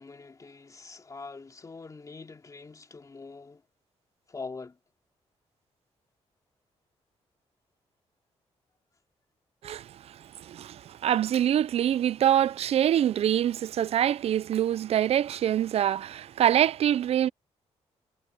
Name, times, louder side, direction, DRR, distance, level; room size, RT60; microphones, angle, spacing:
voice 1, 0.0-3.6 4.3-4.8, left 4 dB, 30° left, 2.8 m, -43 dB
voice 2, 10.5-17.3, right 10 dB, 60° right, 0.4 m, -25 dB
cardioid pair, 105°, 12 cm